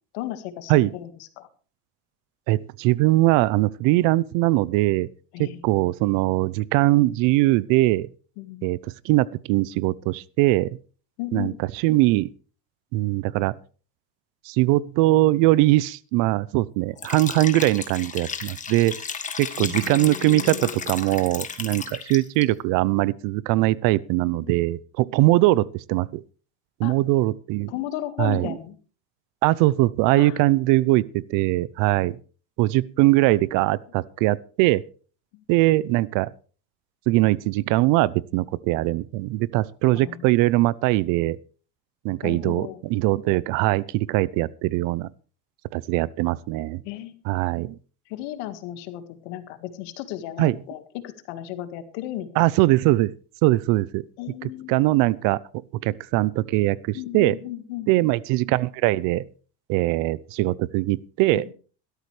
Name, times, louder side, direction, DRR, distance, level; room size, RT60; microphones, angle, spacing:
voice 1, 0.1-1.1 1.4-1.5 5.3-5.6 8.4-8.7 11.2-11.6 19.6-20.9 24.2-24.6 26.8-26.9 27.7-28.8 30.1-30.4 35.3-35.4 40.0-40.2 42.2-42.8 46.9-47.1 48.1-52.5 54.2-54.8 56.9-57.9 61.3-61.5, left 13 dB, 80° left, 1.9 m, -35 dB
voice 2, 2.5-5.1 5.4-8.1 8.6-8.8 9.0-10.8 11.3-11.5 11.8-12.3 12.9-13.5 14.5-18.9 19.4-26.2 26.8-27.7 28.2-28.6 29.4-32.2 32.6-34.8 35.5-36.3 37.1-41.4 42.0-45.1 45.7-46.8 47.3-47.8 50.4-50.5 52.4-53.1 53.4-54.0 54.4-55.4 55.8-57.4 57.9-59.3 59.7-61.4, right 18 dB, 65° right, 0.7 m, -21 dB
Liquid, 17.0-22.4, left 6 dB, 20° left, 1.7 m, -34 dB
16.5 x 13.0 x 3.3 m
cardioid pair, 130°, 34 cm